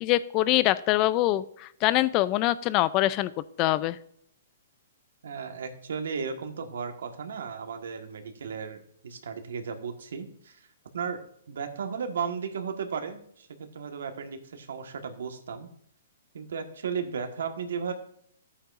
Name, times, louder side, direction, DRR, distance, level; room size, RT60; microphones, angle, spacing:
voice 1, 0.0-3.3 3.6-4.0, left 16 dB, 25° left, 17 dB, 0.4 m, -24 dB
voice 2, 5.2-10.7 10.9-11.2 11.5-15.7 16.3-17.9, right 6 dB, 80° right, 6 dB, 1.4 m, -35 dB
13.5 x 8.7 x 2.5 m, 0.67 s
hypercardioid pair, 160°, 0 cm